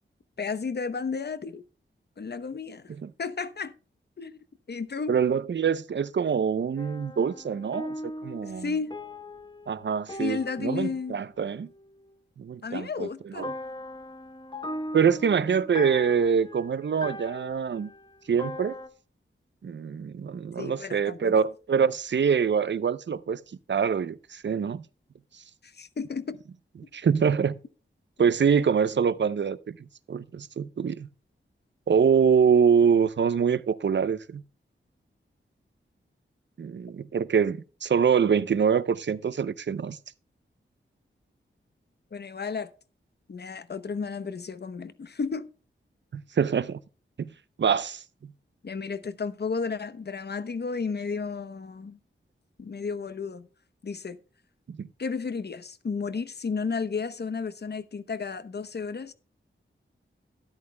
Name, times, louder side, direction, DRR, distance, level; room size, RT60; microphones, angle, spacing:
voice 1, 0.4-1.6 2.2-2.9 3.2-3.7 4.2-4.4 4.7-5.2 8.4-9.0 10.2-11.2 12.6-13.6 20.6-21.4 25.6-26.4 42.1-42.7 43.3-45.5 48.6-52.0 52.6-53.5 53.8-54.2 55.0-59.1, left 5 dB, 55° left, 0.9 m, -33 dB
voice 2, 5.1-8.7 9.7-11.7 12.4-13.5 14.9-17.9 18.3-18.8 19.6-23.4 23.7-24.8 26.9-27.6 28.2-29.8 30.1-31.1 31.9-34.4 36.6-40.0 46.1-46.8 47.2-47.3 47.6-48.3 54.7-54.9, right 6 dB, 60° right, 0.6 m, -25 dB
sound 1, 6.8-12.1 13.4-18.9, left 1 dB, 20° left, 1.0 m, -39 dB
13.0 x 10.5 x 2.2 m
wide cardioid pair, 80°, 21 cm